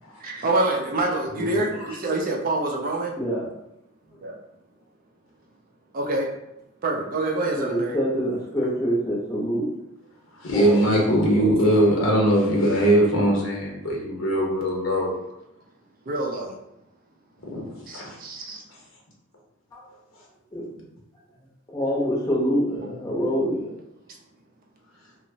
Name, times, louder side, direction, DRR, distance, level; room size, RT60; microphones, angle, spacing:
voice 1, 0.2-3.1 4.2-4.4 5.9-6.3 6.8-8.0 8.6-8.7 16.1-16.5 17.9-18.6 22.8-22.9, right 2 dB, 40° right, 0 dB, 0.4 m, -26 dB
voice 2, 3.2-3.5 7.5-9.7 10.5-11.5 12.2-12.6 19.7-19.8 20.5-20.6 21.7-23.7, equal, 15° left, -5 dB, 0.7 m, -26 dB
voice 3, 10.4-15.1 17.5-17.6 17.9-18.2, equal, 65° left, -2 dB, 0.8 m, -21 dB
2.8 x 2.0 x 2.6 m, 0.87 s
head